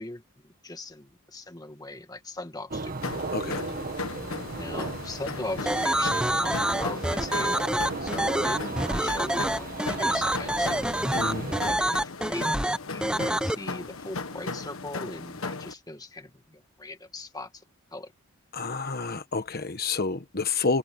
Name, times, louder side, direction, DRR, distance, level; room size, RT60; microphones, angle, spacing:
voice 1, 0.0-3.0 4.6-7.7 8.0-10.8 11.3-12.5 12.9-17.6 17.9-18.1, left 2 dB, 20° left, 1.7 m, -39 dB
sound 1, 2.7-11.8, right 3 dB, 40° right, 1.3 m, -36 dB
sound 2, 3.0-15.7, left 3 dB, 75° left, 1.5 m, -37 dB
voice 2, 3.3-3.6 11.1-11.5 18.5-20.8, left 4 dB, 45° left, 1.2 m, -29 dB
sound 3, 5.7-13.5, right 1 dB, 5° right, 0.7 m, -26 dB
head